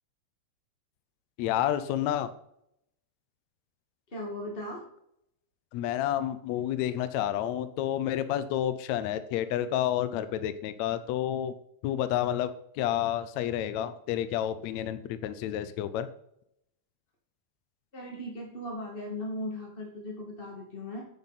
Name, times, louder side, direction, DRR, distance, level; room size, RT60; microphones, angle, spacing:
voice 1, 1.4-2.3 5.7-11.5 11.8-12.5 12.8-16.1, left 11 dB, 75° left, 12 dB, 1.8 m, -30 dB
voice 2, 4.1-4.8 17.9-21.0, left 1 dB, 20° left, -2 dB, 1.7 m, -37 dB
9.7 x 7.4 x 4.1 m, 0.73 s
omnidirectional pair, 3.4 m